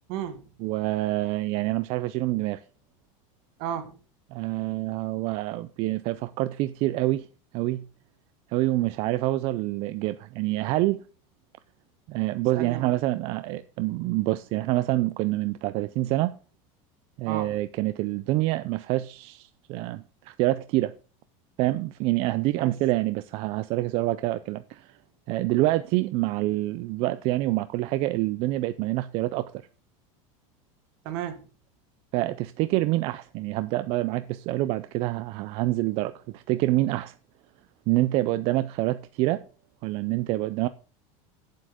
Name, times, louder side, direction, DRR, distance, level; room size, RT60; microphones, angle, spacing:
voice 1, 0.1-0.5 3.6-4.0 12.5-13.0 17.3-17.6 22.6-22.7 31.0-31.5, right 10 dB, 50° right, 1.6 m, -33 dB
voice 2, 0.6-2.6 4.3-7.3 7.5-7.8 8.5-11.0 12.1-16.3 17.2-20.9 21.6-25.0 25.3-29.6 32.1-37.1 37.9-39.4 39.8-40.7, right 17 dB, 35° right, 0.4 m, -26 dB
8.6 x 7.7 x 4.9 m
supercardioid pair, 175°, 17 cm